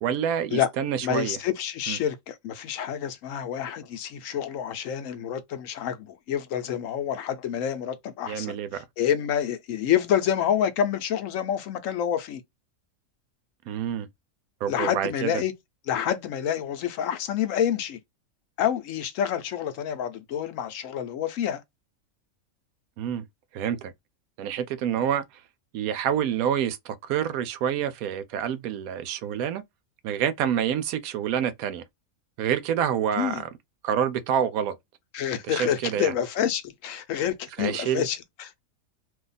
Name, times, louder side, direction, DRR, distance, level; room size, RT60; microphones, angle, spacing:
voice 1, 0.0-1.4 1.9-2.0 8.3-8.8 13.7-14.1 14.6-15.3 23.0-23.3 23.5-23.9 24.4-25.2 25.7-29.6 30.0-31.8 32.4-33.5 33.8-34.8 35.5-36.1 37.6-38.1, right 9 dB, 90° right, 1.1 m, -27 dB
voice 2, 1.0-12.4 14.7-15.5 15.9-18.0 18.6-21.6 33.2-33.4 35.1-38.6, left 9 dB, 75° left, 1.0 m, -28 dB
2.7 x 2.3 x 3.9 m
omnidirectional pair, 1.4 m